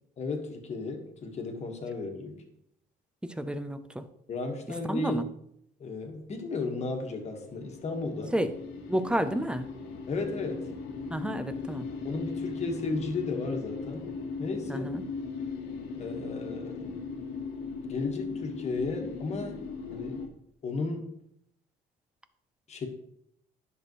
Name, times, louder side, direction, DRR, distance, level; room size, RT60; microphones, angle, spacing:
voice 1, 0.2-2.4 4.3-5.3 5.8-8.3 10.1-10.7 12.0-14.1 14.4-14.9 15.9-17.0 17.8-19.6 19.9-20.3 20.6-21.2 22.7-22.9, left 3 dB, 40° left, 3 dB, 1.6 m, -34 dB
voice 2, 3.2-4.0 4.9-5.2 8.3-8.5 8.9-9.7 11.1-11.9 14.7-15.0, right 1 dB, 5° right, 11 dB, 0.6 m, -30 dB
sound 1, 7.1-20.3, left 4 dB, 90° left, 1.4 m, -38 dB
10.5 x 6.2 x 3.1 m, 0.75 s
cardioid pair, 110°, 17 cm